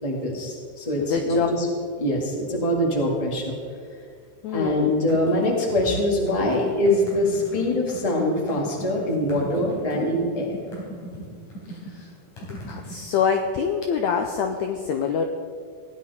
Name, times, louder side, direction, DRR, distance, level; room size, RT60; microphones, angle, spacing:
voice 1, 0.0-1.7 2.0-3.6 4.5-10.6, left 1 dB, 20° left, -1 dB, 1.1 m, -23 dB
voice 2, 1.0-1.5 4.4-4.9 11.7-12.1 12.7-15.3, left 7 dB, 85° left, 5 dB, 1.6 m, -25 dB
sound 1, 4.9-13.0, right 1 dB, 60° left, 4.9 m, -38 dB
16.5 x 10.5 x 4.2 m, 2.1 s
omnidirectional pair, 4.0 m